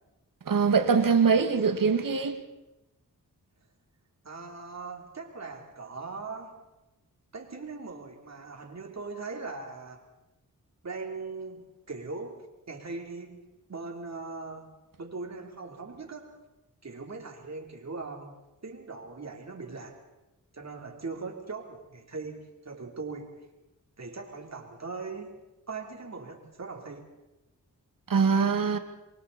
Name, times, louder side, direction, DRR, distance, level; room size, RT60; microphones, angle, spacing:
voice 1, 0.5-2.4 28.1-28.8, right 5 dB, 70° right, 1.9 m, -23 dB
voice 2, 4.2-6.6 7.3-10.1 10.8-13.4 13.7-14.7 15.0-16.4 16.8-18.4 18.6-20.0 20.5-23.3 24.0-25.4 25.7-27.1, right 4 dB, 50° right, 3.7 m, -40 dB
28.5 x 23.0 x 4.3 m
wide cardioid pair, 80°, 35 cm